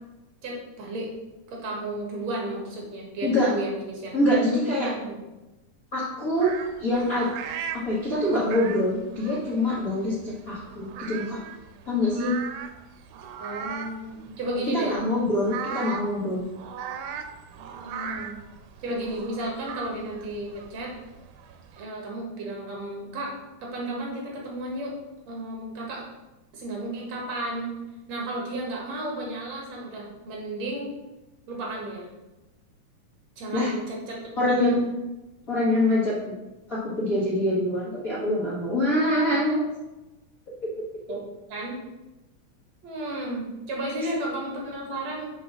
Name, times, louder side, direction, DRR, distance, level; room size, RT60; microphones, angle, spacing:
voice 1, 0.4-1.1 1.5-4.1 4.8-5.2 13.4-14.9 17.8-18.3 18.8-20.9 21.7-23.3 23.6-25.0 25.3-26.1 26.5-27.8 28.1-30.9 31.5-32.1 33.4-34.8 41.1-41.8 42.8-45.3, right 1 dB, 60° right, -2 dB, 2.8 m, -33 dB
voice 2, 4.1-4.9 5.9-6.5 6.8-7.3 7.7-11.4 11.8-12.3 14.7-16.4 33.5-33.7 34.4-34.9 35.5-36.3 36.7-39.6 40.6-40.7, left 1 dB, 40° left, -8 dB, 1.3 m, -24 dB
sound 1, 6.4-21.9, right 7 dB, 85° right, 2.1 m, -39 dB
6.4 x 4.8 x 6.0 m, 1.0 s
omnidirectional pair, 3.6 m